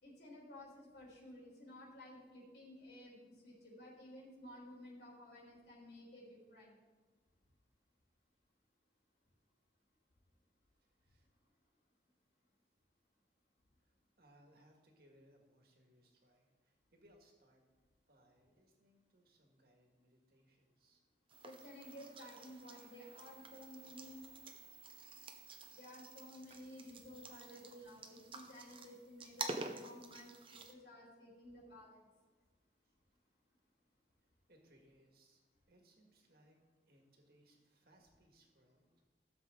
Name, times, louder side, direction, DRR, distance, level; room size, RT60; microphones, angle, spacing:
voice 1, 0.0-6.8 21.4-24.2 25.7-32.0, left 1 dB, 70° left, -4 dB, 3.8 m, -54 dB
voice 2, 10.8-11.3 13.8-17.6 18.1-21.0 32.8-32.9 34.5-35.4 35.7-36.6 36.9-39.0, right 1 dB, 60° right, 2 dB, 1.9 m, -69 dB
sound 1, 21.3-30.7, right 3 dB, 30° right, 0.8 m, -49 dB
15.5 x 7.4 x 3.8 m, 1.3 s
head